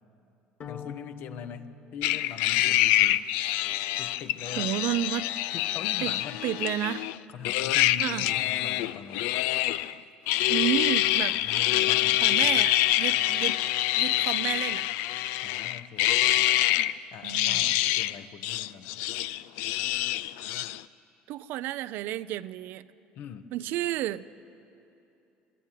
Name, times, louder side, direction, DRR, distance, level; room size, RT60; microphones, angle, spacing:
sound 1, 0.6-2.9, left 6 dB, 45° left, 1.4 m, -45 dB
voice 1, 0.7-3.2 4.0-4.7 5.5-6.4 7.3-9.3 11.3-12.7 15.4-16.6 17.1-19.1 23.1-23.5, left 8 dB, 60° left, 10 dB, 1.1 m, -42 dB
sound 2, 2.0-7.2 7.4-9.9 10.3-16.9 17.2-18.2 18.4-20.8, left 15 dB, 80° left, 0.4 m, -26 dB
voice 2, 4.6-5.3 6.0-6.1 6.4-7.1 8.0-8.3 10.5-11.4 12.2-13.6 14.0-14.8 17.2-17.7 21.3-22.8 23.5-24.2, right 13 dB, 70° right, 15 dB, 0.5 m, -31 dB
23.0 x 12.5 x 9.2 m, 2.8 s
supercardioid pair, 105°, 4 cm